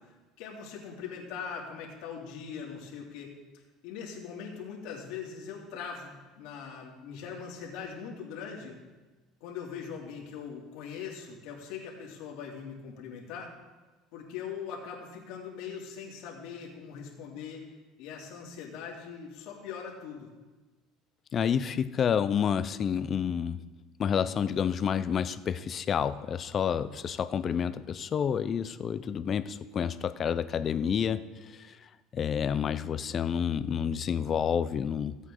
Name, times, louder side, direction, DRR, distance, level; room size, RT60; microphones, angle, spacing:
voice 1, 0.4-3.3 3.8-8.7 9.4-13.5 14.1-17.6 18.0-20.3, left 6 dB, 70° left, -2 dB, 2.7 m, -41 dB
voice 2, 21.3-23.6 24.0-31.2 31.5-31.8 32.1-35.2, left 8 dB, 35° left, 13 dB, 0.5 m, -29 dB
16.5 x 8.2 x 3.8 m, 1.2 s
cardioid pair, 135°, 0 cm